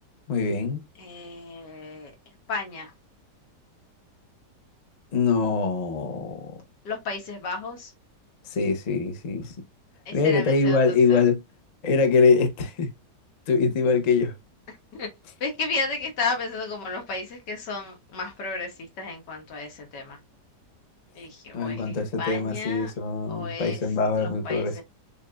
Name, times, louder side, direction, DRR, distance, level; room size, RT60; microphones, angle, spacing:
voice 1, 0.3-0.8 5.1-6.5 8.5-9.5 10.1-11.4 11.8-12.9 13.5-14.3 21.5-24.8, left 4 dB, 45° left, 0.5 m, -23 dB
voice 2, 1.0-2.1 2.5-2.9 6.9-7.9 10.1-11.2 14.7-15.1 15.4-20.2 21.2-22.9 23.3-23.8 24.2-24.8, left 4 dB, 80° left, 1.9 m, -33 dB
6.6 x 2.6 x 2.2 m
omnidirectional pair, 1.8 m